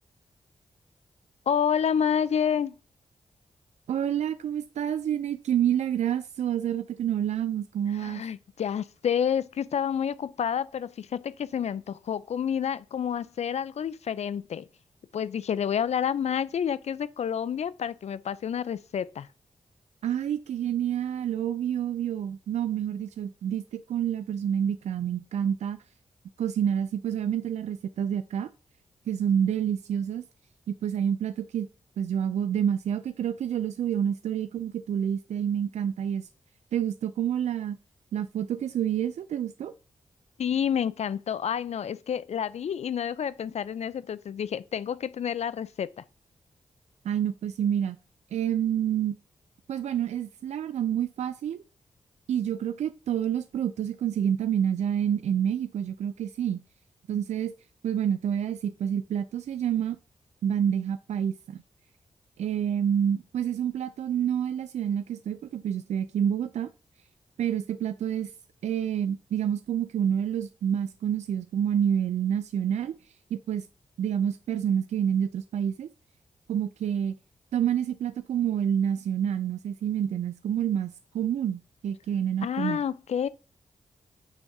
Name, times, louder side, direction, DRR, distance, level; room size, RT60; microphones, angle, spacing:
voice 1, 1.5-2.7 7.9-14.6 15.1-19.3 40.4-45.9 82.4-83.3, left 8 dB, 70° left, 0.6 m, -29 dB
voice 2, 3.9-8.2 20.0-25.8 26.4-28.5 29.1-30.2 30.7-31.7 32.0-36.3 36.7-37.8 38.1-39.7 47.0-48.0 48.3-49.2 49.7-51.6 52.3-56.6 57.1-57.5 57.8-60.0 60.4-61.6 62.4-66.7 67.4-68.3 68.6-72.9 73.3-73.7 74.0-75.9 76.5-77.2 77.5-82.8, right 9 dB, 90° right, 0.4 m, -28 dB
9.0 x 3.6 x 6.7 m
cardioid pair, 70°, 11 cm